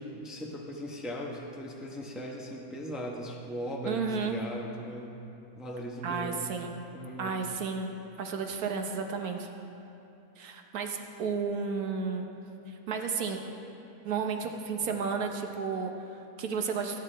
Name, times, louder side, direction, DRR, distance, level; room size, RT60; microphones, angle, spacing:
voice 1, 0.0-5.1 5.6-6.5 6.9-7.4, equal, ahead, -1 dB, 0.8 m, -38 dB
voice 2, 3.8-4.4 6.0-6.7 7.2-7.9 8.2-9.5 10.4-12.3 12.7-13.4 14.0-17.0, right 5 dB, 70° right, 4 dB, 1.3 m, -32 dB
17.5 x 9.5 x 3.3 m, 2.8 s
omnidirectional pair, 1.6 m